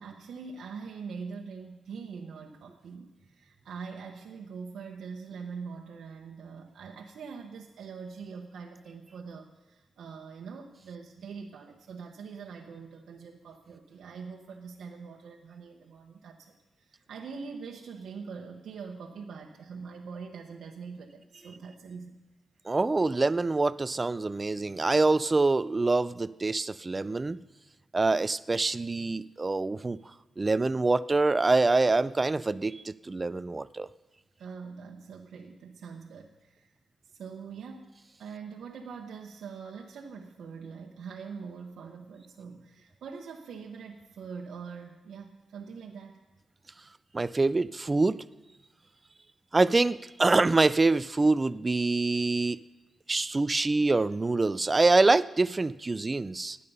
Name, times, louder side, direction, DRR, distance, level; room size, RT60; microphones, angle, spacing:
voice 1, 0.0-22.2 34.4-36.7 37.0-37.9 38.2-46.2, right 5 dB, 75° right, 0 dB, 1.0 m, -43 dB
voice 2, 22.7-27.4 27.9-30.0 30.4-33.9 47.1-48.2 49.5-52.6 53.1-56.6, right 3 dB, 20° right, 16 dB, 0.3 m, -25 dB
19.5 x 8.4 x 5.5 m, 1.1 s
wide cardioid pair, 150°, 0 cm